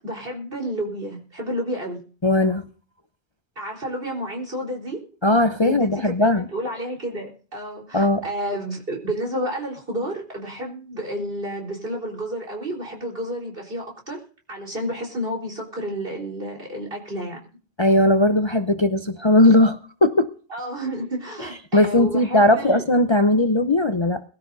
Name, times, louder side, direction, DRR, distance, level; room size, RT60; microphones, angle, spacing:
voice 1, 0.0-2.0 3.6-5.0 5.6-14.2 14.5-17.4 20.5-22.8, equal, 60° right, -1 dB, 4.4 m, -30 dB
voice 2, 2.2-2.6 5.2-6.4 7.9-8.2 17.8-20.3 21.7-24.2, left 1 dB, 30° left, 8 dB, 0.7 m, -18 dB
23.0 x 12.5 x 2.7 m, 0.40 s
omnidirectional pair, 1.1 m